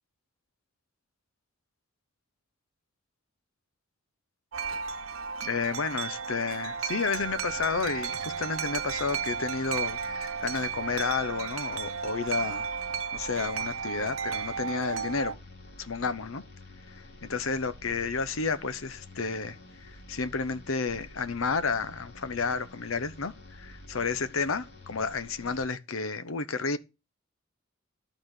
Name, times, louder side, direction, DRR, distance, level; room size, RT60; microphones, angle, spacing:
Wind chime, 4.5-15.3, right 6 dB, 85° right, 0.7 m, -34 dB
voice 1, 5.4-12.7 13.1-15.4 15.8-16.4 16.9-26.8, left 4 dB, 90° left, 0.9 m, -31 dB
sound 1, 7.1-25.7, left 1 dB, 55° left, 2.0 m, -50 dB
12.0 x 4.2 x 8.0 m
head